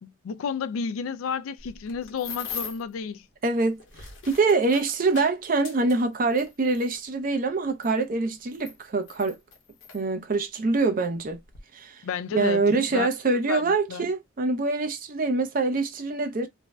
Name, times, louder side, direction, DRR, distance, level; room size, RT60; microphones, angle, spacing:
voice 1, 0.0-3.3 12.0-13.1 13.3-14.1, left 6 dB, 80° left, 0.4 m, -32 dB
sound 1, 1.6-2.9 3.7-7.0 7.8-7.9 8.5-10.0 10.8-10.9 11.3-11.6, left 6 dB, 65° left, 0.8 m, -40 dB
voice 2, 3.4-3.8 4.3-9.4 9.9-11.4 11.7-12.0 12.3-16.5, right 3 dB, 40° right, 0.5 m, -25 dB
2.5 x 2.1 x 3.1 m
head